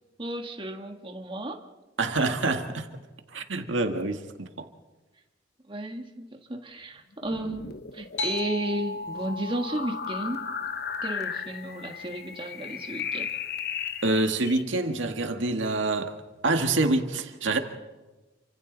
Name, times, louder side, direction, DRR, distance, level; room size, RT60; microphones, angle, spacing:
voice 1, 0.2-1.6 5.7-10.5 11.0-13.3, right 1 dB, 25° right, 1.6 m, -33 dB
voice 2, 2.0-2.9 3.3-4.7 14.0-16.2 16.4-17.6, right 2 dB, 80° right, 1.8 m, -26 dB
sound 1, 7.2-14.6, left 7 dB, 55° left, 1.1 m, -36 dB
sound 2, 8.2-13.2, left 2 dB, 90° left, 4.4 m, -38 dB
29.0 x 25.5 x 4.0 m
head